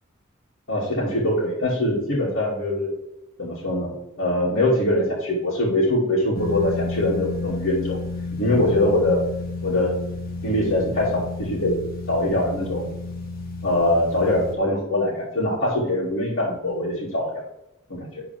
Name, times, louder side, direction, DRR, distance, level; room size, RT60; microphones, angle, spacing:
voice 1, 0.7-2.9 3.4-8.0 8.4-9.3 9.6-9.9 10.4-11.7 12.1-12.9 13.6-17.4 17.9-18.2, left 1 dB, 65° left, -9 dB, 2.8 m, -23 dB
sound 1, 6.3-14.5, left 3 dB, 45° left, 1.6 m, -32 dB
11.5 x 4.5 x 3.6 m, 0.86 s
head